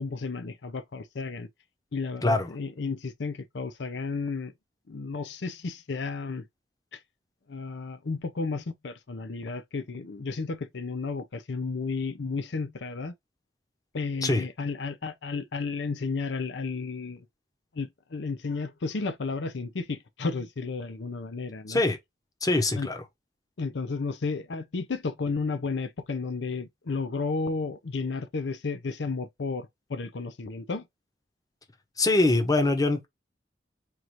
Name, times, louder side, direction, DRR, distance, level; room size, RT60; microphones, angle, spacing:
voice 1, 0.0-1.5 1.9-4.5 4.9-6.5 6.9-7.0 7.5-13.1 13.9-17.2 17.7-21.8 22.7-22.9 23.6-30.8, left 4 dB, 70° left, 0.6 m, -33 dB
voice 2, 22.4-23.0 32.0-33.1, left 2 dB, 20° left, 0.8 m, -23 dB
4.7 x 2.5 x 2.9 m
head